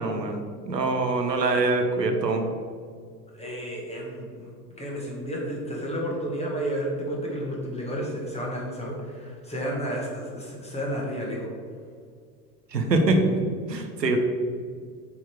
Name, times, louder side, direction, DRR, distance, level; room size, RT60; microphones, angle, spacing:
voice 1, 0.0-2.5 12.7-13.4 13.7-14.2, right 2 dB, 85° right, 4 dB, 1.0 m, -24 dB
voice 2, 3.3-4.5 4.8-11.5, equal, 15° left, -2 dB, 2.0 m, -31 dB
8.0 x 4.5 x 4.9 m, 2.1 s
figure-of-eight pair, 80°, 48 cm